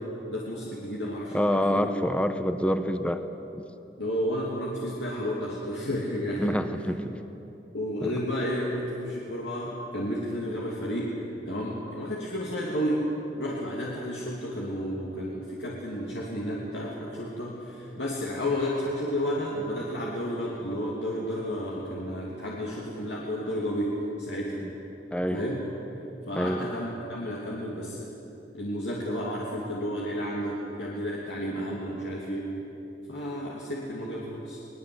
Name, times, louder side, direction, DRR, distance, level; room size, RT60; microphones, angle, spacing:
voice 1, 0.0-1.9 4.0-6.6 7.7-11.1 11.5-13.1 13.4-24.7 25.3-25.6 26.3-28.1 28.5-32.5 33.1-34.6, equal, 75° left, -4 dB, 2.9 m, -32 dB
voice 2, 1.3-3.3 3.5-3.6 6.4-7.2 8.0-8.1 25.1-25.4 26.3-26.6, equal, 5° left, 9 dB, 1.0 m, -27 dB
22.0 x 20.5 x 8.1 m, 3.0 s
head